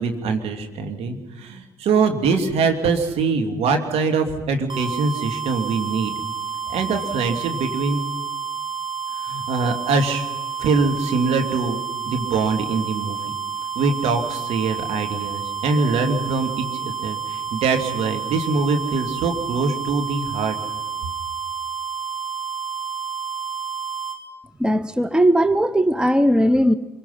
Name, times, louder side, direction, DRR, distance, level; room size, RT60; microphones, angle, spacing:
voice 1, 0.0-6.1 6.7-8.0 9.2-10.2 10.6-11.8 12.1-13.2 13.8-20.6, right 4 dB, 60° right, 5 dB, 2.6 m, -23 dB
sound 1, 4.7-24.2, right 7 dB, 40° right, 3.1 m, -30 dB
voice 2, 24.6-26.7, equal, 5° right, 14 dB, 1.1 m, -18 dB
26.0 x 23.5 x 5.9 m, 1.1 s
hypercardioid pair, 45°, 11 cm